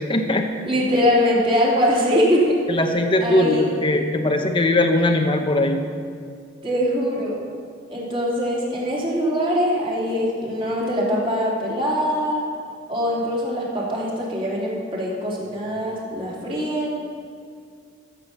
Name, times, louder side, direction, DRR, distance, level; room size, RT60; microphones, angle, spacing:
voice 1, 0.0-0.5 2.7-5.8, left 1 dB, 25° left, 4 dB, 0.9 m, -20 dB
voice 2, 0.7-2.5 3.2-3.7 6.6-7.4 7.9-12.4 12.9-17.1, equal, 30° right, -5 dB, 3.3 m, -22 dB
14.0 x 7.8 x 6.7 m, 2.2 s
head